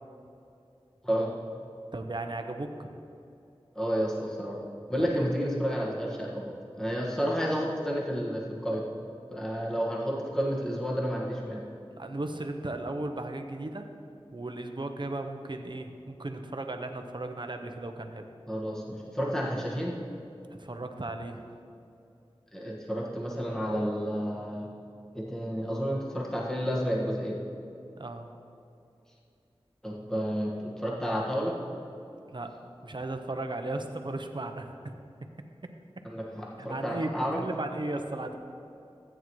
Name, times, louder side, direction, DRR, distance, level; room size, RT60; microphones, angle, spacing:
voice 1, 1.9-2.9 5.0-5.2 11.9-13.9 14.3-18.2 20.6-21.4 28.0-28.3 32.3-32.5 32.8-34.7 36.6-38.4, right 2 dB, 50° right, 5 dB, 0.8 m, -36 dB
voice 2, 3.7-4.6 4.9-6.5 6.8-8.8 9.3-11.6 18.5-20.0 22.5-24.7 25.1-27.3 29.8-31.6 36.0-37.4, equal, 5° left, -4 dB, 1.6 m, -30 dB
14.0 x 8.8 x 3.2 m, 2.6 s
wide cardioid pair, 55°, 10 cm